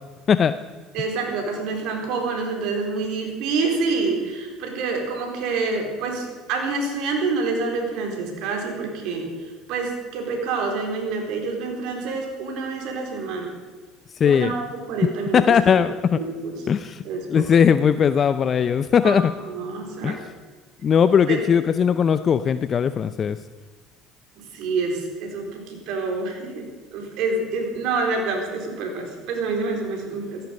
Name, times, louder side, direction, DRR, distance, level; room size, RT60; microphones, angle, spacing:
voice 1, 0.9-9.3 9.7-13.5 14.2-15.9 16.1-16.6 17.0-17.6 19.0-20.2 21.3-21.4 24.4-30.4, right 4 dB, 70° right, 2 dB, 4.2 m, -27 dB
voice 2, 14.2-14.5 15.3-16.2 16.7-17.0 17.3-19.3 20.0-20.2 20.8-23.4, left 7 dB, 40° left, 12 dB, 0.6 m, -19 dB
16.5 x 14.5 x 5.3 m, 1.4 s
supercardioid pair, 80°, 0 cm